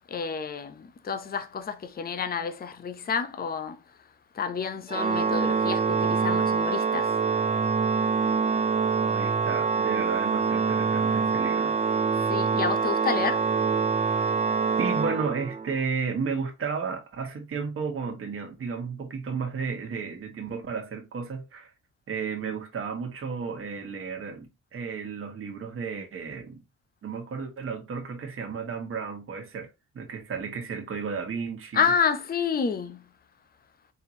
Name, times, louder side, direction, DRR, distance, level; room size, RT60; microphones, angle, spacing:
voice 1, 0.1-3.8 4.3-7.1 12.3-13.5 31.7-33.0, left 6 dB, 30° left, 0.7 m, -29 dB
Organ, 4.9-15.8, right 5 dB, 25° right, 0.4 m, -25 dB
voice 2, 9.0-11.8 14.8-21.7 22.1-26.6 27.0-31.9, right 5 dB, 45° right, 1.4 m, -33 dB
4.4 x 3.5 x 2.7 m
cardioid pair, 90°, 30 cm